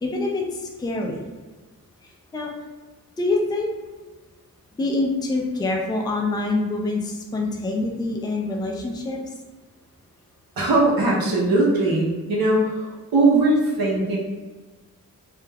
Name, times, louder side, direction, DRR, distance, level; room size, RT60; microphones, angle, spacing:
voice 1, 0.0-1.2 2.0-2.5 3.2-3.7 4.8-9.3, left 2 dB, 10° left, -1 dB, 0.3 m, -26 dB
voice 2, 10.6-14.2, right 2 dB, 85° right, -4 dB, 0.8 m, -20 dB
2.3 x 2.2 x 3.2 m, 1.3 s
wide cardioid pair, 95°, 35 cm